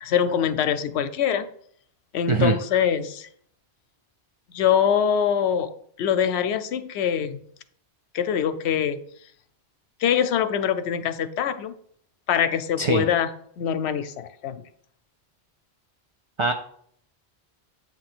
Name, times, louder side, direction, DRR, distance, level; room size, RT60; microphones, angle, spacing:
voice 1, 0.0-1.5 2.1-3.3 4.5-5.7 6.0-7.4 8.1-9.0 10.0-11.7 12.3-13.3 13.6-14.6, left 8 dB, 90° left, 11 dB, 0.9 m, -23 dB
voice 2, 2.3-2.6 12.8-13.0 16.4-16.5, right 4 dB, 45° right, 5 dB, 0.4 m, -21 dB
8.2 x 3.0 x 5.9 m, 0.64 s
omnidirectional pair, 1.1 m